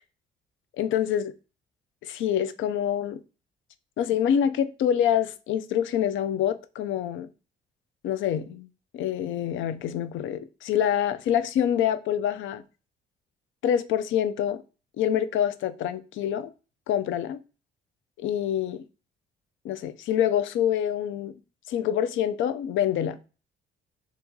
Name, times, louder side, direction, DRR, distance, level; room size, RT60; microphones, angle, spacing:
voice 1, 0.8-1.3 2.0-3.2 4.0-7.3 8.0-8.7 8.9-12.6 13.6-14.6 15.0-16.5 16.9-17.4 18.2-18.8 19.6-21.3 21.7-23.2, left 10 dB, 75° left, 0.4 m, -26 dB
2.9 x 2.8 x 3.5 m
cardioid pair, 90°, 20 cm